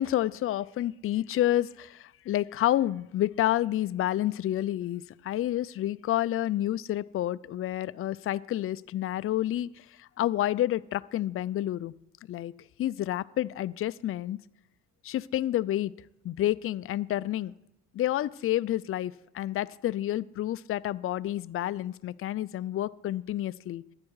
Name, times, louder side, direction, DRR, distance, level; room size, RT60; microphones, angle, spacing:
voice 1, 0.0-11.9 12.3-12.5 12.8-14.4 15.0-15.9 16.2-17.5 17.9-23.8, left 13 dB, 45° left, 16 dB, 0.4 m, -29 dB
13.0 x 9.8 x 4.7 m, 0.86 s
cardioid pair, 90°, 30 cm